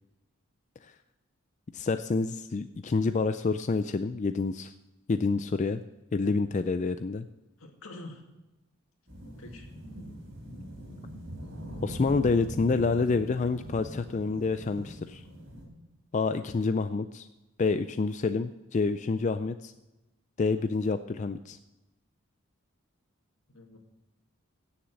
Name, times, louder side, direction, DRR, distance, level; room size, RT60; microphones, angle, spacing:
voice 1, 1.7-4.7 5.1-5.8 6.1-7.3 11.8-15.2 16.1-17.3 17.6-19.7 20.4-21.6, left 4 dB, 35° left, 10 dB, 0.4 m, -28 dB
voice 2, 7.6-8.2 9.4-9.7 23.5-23.8, left 2 dB, 80° left, 3 dB, 2.2 m, -45 dB
sound 1, 9.1-15.6, equal, 55° right, 4.1 m, -42 dB
16.5 x 7.1 x 6.4 m, 1.0 s
head